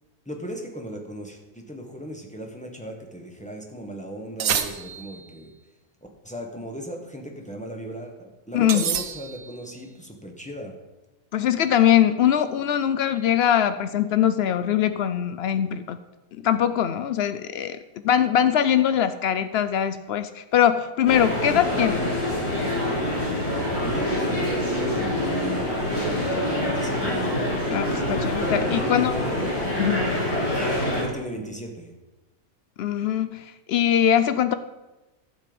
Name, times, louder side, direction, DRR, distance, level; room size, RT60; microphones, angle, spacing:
voice 1, 0.2-5.5 6.2-10.7 23.8-27.4 28.6-29.7 30.9-31.9, equal, 5° left, 1 dB, 1.3 m, -36 dB
sound 1, 4.4-5.3 8.7-9.6, right 8 dB, 70° right, 1.3 m, -28 dB
voice 2, 8.5-8.8 11.3-16.0 16.4-17.8 18.0-22.1 27.7-29.1 29.8-30.1 32.8-34.5, left 10 dB, 80° left, 11 dB, 0.5 m, -22 dB
sound 2, 21.1-31.0, left 1 dB, 45° left, 3.8 m, -25 dB
11.5 x 7.6 x 5.2 m, 1.1 s
omnidirectional pair, 1.6 m